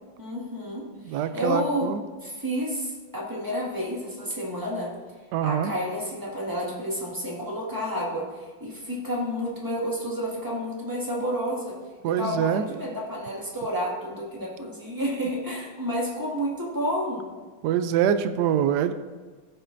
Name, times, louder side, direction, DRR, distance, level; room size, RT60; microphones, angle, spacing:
voice 1, 0.2-1.9 2.2-4.9 5.4-11.7 12.0-17.2, equal, 10° right, -5 dB, 1.7 m, -30 dB
voice 2, 1.0-2.0 5.3-5.7 12.0-12.7 17.6-18.9, right 9 dB, 75° right, 11 dB, 0.9 m, -24 dB
13.5 x 6.6 x 2.6 m, 1.4 s
omnidirectional pair, 2.2 m